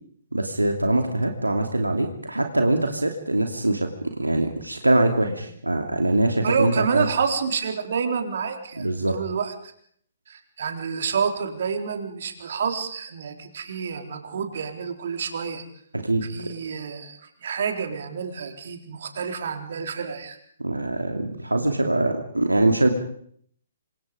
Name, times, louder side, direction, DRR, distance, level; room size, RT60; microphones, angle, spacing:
voice 1, 0.3-7.1 8.8-9.2 15.9-16.5 20.6-22.9, right 1 dB, 85° right, 4 dB, 2.8 m, -23 dB
voice 2, 6.4-9.5 10.3-15.6 16.3-20.4, right 6 dB, 55° right, 5 dB, 3.9 m, -28 dB
27.5 x 26.0 x 5.2 m, 0.65 s
figure-of-eight pair, 125°, 0 cm